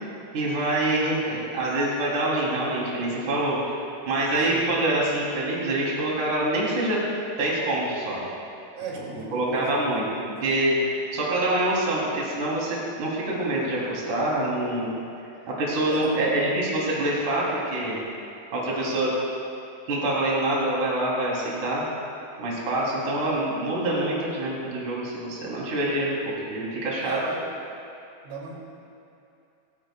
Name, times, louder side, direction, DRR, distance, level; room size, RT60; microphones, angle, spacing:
voice 1, 0.3-3.6 4.1-7.0 7.4-8.2 9.1-10.1 10.4-14.9 15.5-18.0 18.5-19.1 19.9-21.9 22.4-26.2 26.4-27.2, right 1 dB, 40° right, -5 dB, 4.1 m, -25 dB
voice 2, 8.7-9.9 15.9-16.3 27.0-27.4 28.2-28.5, right 4 dB, 70° right, -3 dB, 4.7 m, -36 dB
26.0 x 14.0 x 2.3 m, 2.7 s
omnidirectional pair, 5.7 m